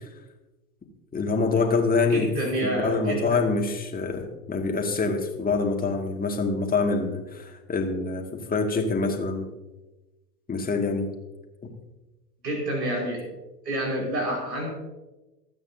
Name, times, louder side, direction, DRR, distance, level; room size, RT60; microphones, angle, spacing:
voice 1, 1.1-2.3 2.6-9.5 10.5-11.1, left 4 dB, 15° left, 2 dB, 2.3 m, -25 dB
voice 2, 2.1-3.2 12.4-13.2 13.7-14.7, right 1 dB, 75° right, -1 dB, 5.4 m, -28 dB
26.5 x 9.2 x 2.8 m, 1.1 s
figure-of-eight pair, 80°, 49 cm